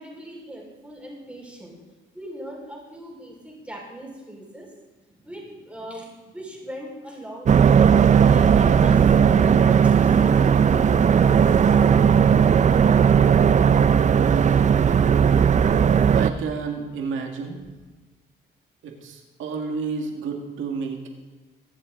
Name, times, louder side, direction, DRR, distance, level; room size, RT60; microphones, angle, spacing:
voice 1, 0.0-1.7 2.1-4.7 5.1-7.7 8.2-11.5, equal, 5° right, -3 dB, 5.1 m, -39 dB
sound 1, 7.4-16.3, right 7 dB, 35° right, 0.6 m, -17 dB
voice 2, 16.1-17.6 18.8-21.1, right 5 dB, 80° right, 3 dB, 2.2 m, -30 dB
22.0 x 7.6 x 3.9 m, 1.2 s
cardioid pair, 90°, 20 cm